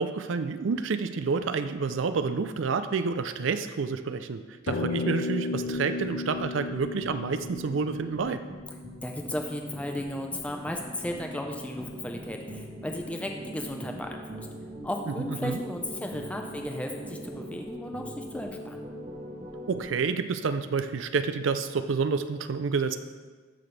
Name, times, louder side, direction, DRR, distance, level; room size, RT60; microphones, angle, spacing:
voice 1, 0.0-8.4 15.4-15.6 19.7-23.0, right 5 dB, 75° right, 10 dB, 0.5 m, -29 dB
sound 1, 4.7-9.3, left 3 dB, 60° left, 0.4 m, -34 dB
sound 2, 5.5-19.9, equal, 45° right, 1.0 m, -42 dB
voice 2, 9.0-14.5 14.8-18.9, left 1 dB, 5° left, 3 dB, 0.5 m, -35 dB
sound 3, 9.7-17.5, right 1 dB, 25° right, 1.1 m, -48 dB
13.5 x 5.9 x 3.3 m, 1.4 s
head